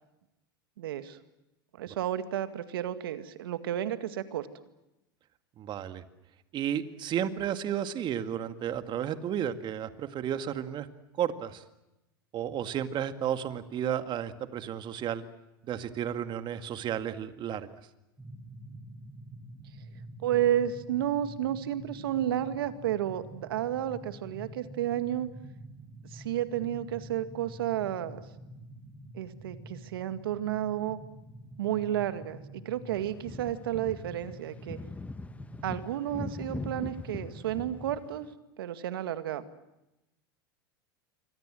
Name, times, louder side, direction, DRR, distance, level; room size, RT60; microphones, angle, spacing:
voice 1, 0.8-1.2 1.8-4.5 20.2-25.3 26.1-28.2 29.1-31.0 31.6-34.8 35.6-38.3 38.6-39.4, right 11 dB, 75° right, 10 dB, 2.0 m, -31 dB
voice 2, 5.6-6.0 6.5-10.9 11.2-11.6 12.3-15.2 15.7-17.7, right 9 dB, 40° right, 9 dB, 2.1 m, -32 dB
sound 1, 18.2-38.0, right 1 dB, 10° right, 6.6 m, -48 dB
sound 2, 32.9-38.3, left 3 dB, 10° left, 1.1 m, -41 dB
26.5 x 24.5 x 7.8 m, 0.94 s
hypercardioid pair, 95°, 12 cm